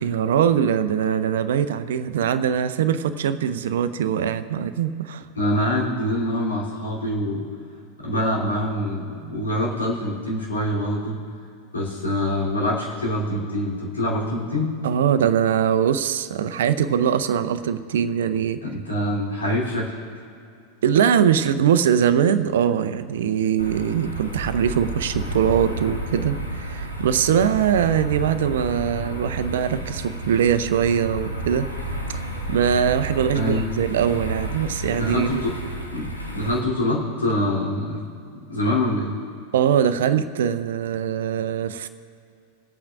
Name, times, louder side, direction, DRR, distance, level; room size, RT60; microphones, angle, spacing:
voice 1, 0.0-5.3 9.2-9.5 14.8-18.6 20.8-31.7 32.1-32.2 32.5-35.4 39.5-41.9, right 8 dB, 60° right, 12 dB, 0.5 m, -22 dB
voice 2, 5.4-7.5 8.0-11.2 11.7-14.7 18.6-19.9 33.3-33.7 35.0-35.5 35.9-36.1 36.3-38.0 38.3-39.1, left 1 dB, 75° left, -5 dB, 3.2 m, -25 dB
sound 1, 23.6-36.6, right 1 dB, 90° left, 1.1 m, -31 dB
24.0 x 8.6 x 2.5 m, 2.5 s
figure-of-eight pair, 90°, 0 cm